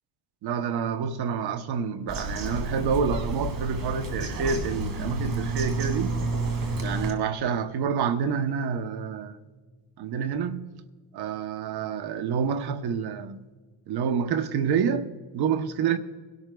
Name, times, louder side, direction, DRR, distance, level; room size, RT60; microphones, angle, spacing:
voice 1, 0.4-6.2 6.8-9.4 10.0-10.7 11.1-13.4 13.9-16.0, right 6 dB, 70° right, 0.9 m, -28 dB
Bird vocalization bird call bird song, 2.1-7.1, right 2 dB, 55° right, 2.4 m, -30 dB
23.5 x 12.5 x 2.3 m
cardioid pair, 105°, 40 cm